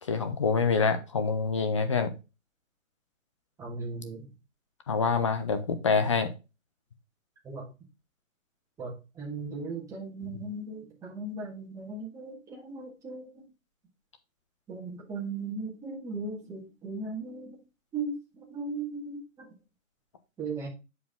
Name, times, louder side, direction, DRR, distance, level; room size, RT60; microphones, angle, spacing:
voice 1, 0.0-2.1 4.9-6.3, left 5 dB, 25° left, 0.6 m, -26 dB
voice 2, 3.6-4.3 7.4-7.7 8.8-13.4 14.7-17.6 17.9-19.5 20.4-20.7, right 3 dB, 10° right, 1.7 m, -37 dB
8.0 x 4.9 x 3.6 m
hypercardioid pair, 150°, 41 cm